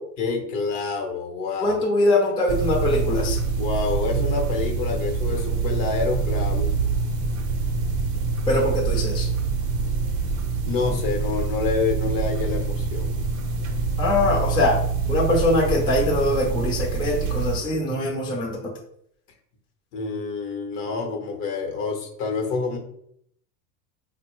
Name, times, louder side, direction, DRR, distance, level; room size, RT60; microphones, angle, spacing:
voice 1, 0.2-1.8 3.6-6.7 10.6-13.1 19.9-22.8, left 4 dB, 45° left, 4 dB, 0.9 m, -27 dB
voice 2, 1.6-3.4 8.5-9.3 14.0-14.8 15.1-18.6, left 2 dB, 10° left, -2 dB, 0.6 m, -22 dB
sound 1, 2.5-17.6, right 5 dB, 40° right, 0.7 m, -25 dB
4.2 x 2.1 x 3.1 m, 0.71 s
hypercardioid pair, 100°, 48 cm